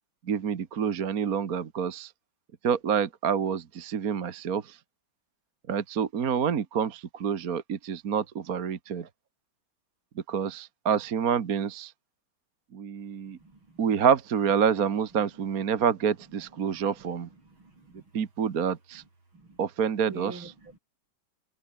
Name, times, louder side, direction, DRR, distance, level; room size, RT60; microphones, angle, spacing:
voice 1, 0.3-2.1 2.6-4.8 5.7-9.1 10.3-11.9 12.7-13.4 13.8-17.3 18.1-19.0 19.6-20.5, right 7 dB, 50° right, 1.7 m, -27 dB
voice 2, 13.3-14.0 16.6-16.8 17.3-18.0 18.9-19.0 19.3-19.6 20.1-20.8, right 3 dB, 80° right, 7.3 m, -47 dB
omnidirectional pair, 2.2 m